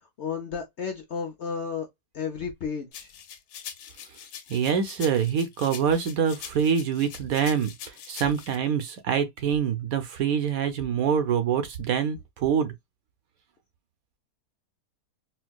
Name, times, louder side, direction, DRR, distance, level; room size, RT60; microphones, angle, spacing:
voice 1, 0.2-1.9 2.1-3.1, left 6 dB, 60° left, 0.8 m, -32 dB
sound 1, 2.9-8.5, left 8 dB, 90° left, 1.3 m, -43 dB
voice 2, 4.5-12.7, right 7 dB, 70° right, 1.0 m, -25 dB
4.4 x 2.1 x 2.2 m
omnidirectional pair, 1.7 m